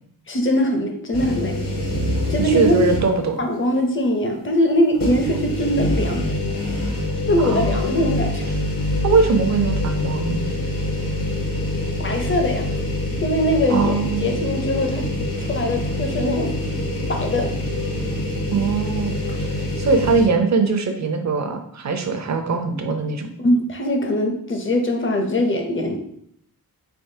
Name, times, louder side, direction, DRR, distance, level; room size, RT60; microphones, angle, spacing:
voice 1, 0.3-1.6 2.3-2.8 3.4-6.3 7.3-8.5 12.0-12.7 13.2-13.9 14.2-15.1 15.4-16.5 17.1-17.5 23.4-26.0, equal, 35° left, 4 dB, 0.5 m, -21 dB
sound 1, 1.1-3.3 3.7-3.8 4.9-20.3, left 1 dB, 70° left, 1.1 m, -25 dB
voice 2, 2.4-3.4 7.4-8.1 9.0-10.4 13.7-14.4 18.5-23.3, right 4 dB, 50° right, 6 dB, 0.5 m, -21 dB
3.9 x 3.5 x 2.7 m, 0.67 s
wide cardioid pair, 130°, 36 cm